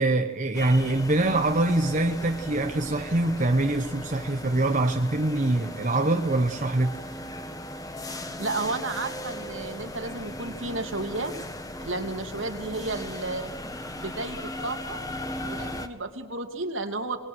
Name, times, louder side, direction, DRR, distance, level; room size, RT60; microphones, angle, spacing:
voice 1, 0.0-7.0, right 2 dB, 40° right, 5 dB, 1.1 m, -24 dB
sound 1, 0.5-15.9, left 1 dB, 20° left, 1.6 m, -37 dB
voice 2, 8.4-11.3 11.8-13.5 14.0-15.0 15.4-17.2, right 2 dB, 70° right, 4 dB, 2.9 m, -32 dB
27.0 x 21.0 x 6.3 m, 1.2 s
head